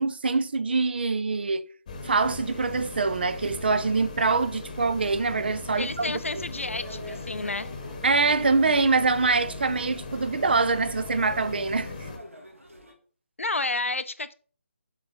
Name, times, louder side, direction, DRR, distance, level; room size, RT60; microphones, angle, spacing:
voice 1, 0.0-1.7 2.0-6.4 8.0-12.1, right 4 dB, 50° right, 0.5 m, -24 dB
sound 1, 1.9-12.2, left 3 dB, 30° left, 1.0 m, -39 dB
voice 2, 5.8-7.7 13.4-14.3, left 3 dB, 70° left, 0.6 m, -30 dB
sound 2, 6.4-12.9, equal, 80° right, 2.3 m, -45 dB
7.2 x 4.3 x 4.3 m
figure-of-eight pair, 150°, 7 cm